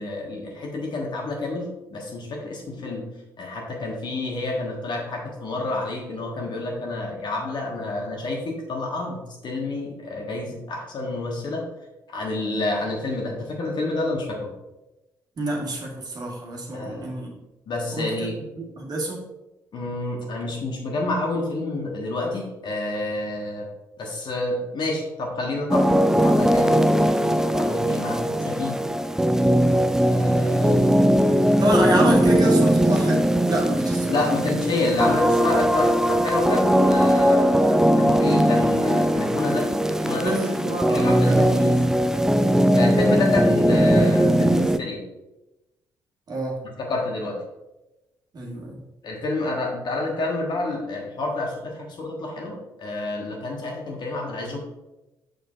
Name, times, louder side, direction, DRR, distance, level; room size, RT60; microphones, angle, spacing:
voice 1, 0.0-3.1 3.4-11.7 12.1-14.5 16.7-17.1 17.7-18.4 19.7-23.7 24.0-26.9 27.2-28.7 30.0-30.9 34.1-41.8 42.7-45.0 46.8-47.4 49.0-54.6, left 2 dB, 45° left, 0 dB, 1.5 m, -29 dB
voice 2, 15.4-17.3 17.9-18.3 18.6-19.3 31.6-34.4 40.2-41.6 42.3-42.6 43.0-43.2 46.3-46.6 48.3-48.8, right 2 dB, 40° right, -2 dB, 1.7 m, -28 dB
sound 1, 25.7-44.8, equal, 5° right, 0.4 m, -19 dB
6.7 x 6.5 x 2.5 m, 0.99 s
figure-of-eight pair, 40°, 10 cm